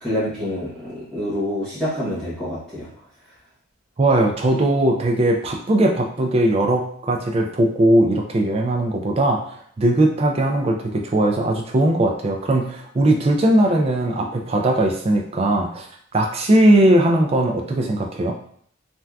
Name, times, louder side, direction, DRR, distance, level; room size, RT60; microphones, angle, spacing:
voice 1, 0.0-2.9, left 1 dB, 5° left, -12 dB, 0.9 m, -27 dB
voice 2, 4.0-9.4 9.8-15.9 16.1-18.3, right 1 dB, 30° right, 2 dB, 0.3 m, -19 dB
3.3 x 2.6 x 2.3 m, 0.63 s
head